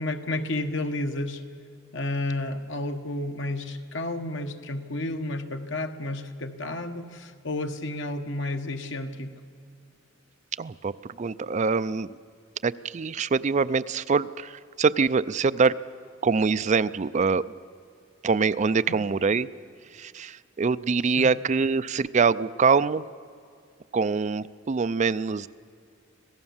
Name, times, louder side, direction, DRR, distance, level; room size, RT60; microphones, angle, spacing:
voice 1, 0.0-1.4 1.9-9.3 18.9-19.0 21.2-21.3, left 2 dB, 65° left, 6 dB, 1.5 m, -31 dB
voice 2, 10.6-12.2 12.6-15.8 16.2-17.4 18.2-19.5 19.9-23.0 23.9-25.5, right 5 dB, 35° right, 15 dB, 0.4 m, -24 dB
26.0 x 17.5 x 7.2 m, 2.3 s
head